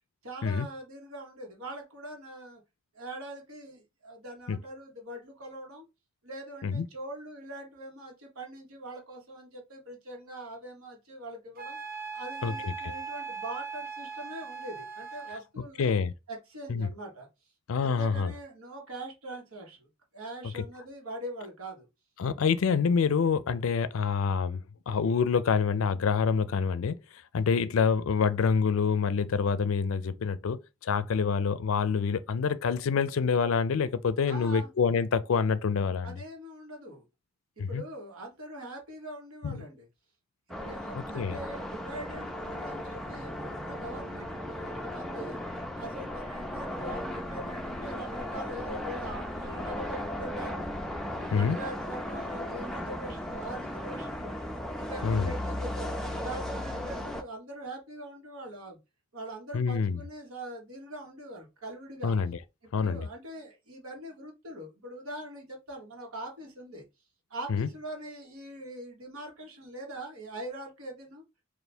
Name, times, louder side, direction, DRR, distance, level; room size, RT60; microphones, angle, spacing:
voice 1, 0.2-2.6 2.9-5.9 6.2-11.8 12.1-15.9 16.3-17.3 17.8-19.9 20.1-21.9 34.3-34.7 36.0-37.0 37.6-39.9 40.5-45.4 45.7-50.7 51.1-54.3 54.7-58.8 59.1-62.2 62.7-66.8 67.3-71.2, right 1 dB, 85° right, 1.3 m, -42 dB
Wind instrument woodwind instrument, 11.6-15.4, right 5 dB, 40° right, 0.6 m, -39 dB
voice 2, 12.4-12.9 15.8-16.1 16.7-16.9 17.7-18.3 22.2-27.0 27.3-36.1 37.6-37.8 39.4-39.6 40.9-41.4 51.3-51.6 55.0-55.3 59.5-60.0 62.0-62.4 62.7-63.1 67.5-67.7, left 5 dB, 70° left, 0.4 m, -27 dB
sound 1, 40.5-57.2, left 1 dB, ahead, 0.4 m, -36 dB
3.4 x 2.5 x 4.2 m
head